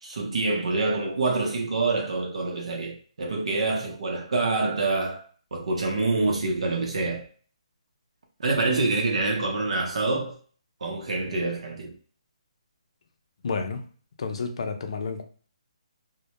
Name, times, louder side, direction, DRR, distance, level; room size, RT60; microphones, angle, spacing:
voice 1, 0.0-5.2 5.5-7.3 8.4-10.4 10.8-11.9, right 3 dB, 65° right, 0.7 m, -26 dB
voice 2, 13.4-13.8 14.2-15.2, left 4 dB, 55° left, 0.5 m, -30 dB
2.1 x 2.1 x 2.8 m
hypercardioid pair, 165°, 4 cm